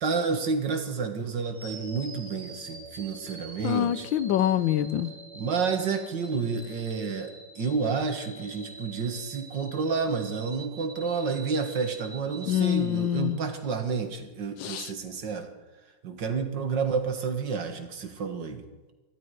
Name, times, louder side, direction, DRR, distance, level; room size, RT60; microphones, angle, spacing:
voice 1, 0.0-4.1 5.3-15.5 16.0-18.7, right 5 dB, 60° right, 6 dB, 2.2 m, -30 dB
sound 1, 1.5-13.7, right 2 dB, 30° right, 2.5 m, -45 dB
voice 2, 3.6-5.1 12.5-13.4 14.6-14.9, left 11 dB, 70° left, 14 dB, 1.3 m, -25 dB
24.5 x 12.0 x 4.8 m, 1.2 s
omnidirectional pair, 2.3 m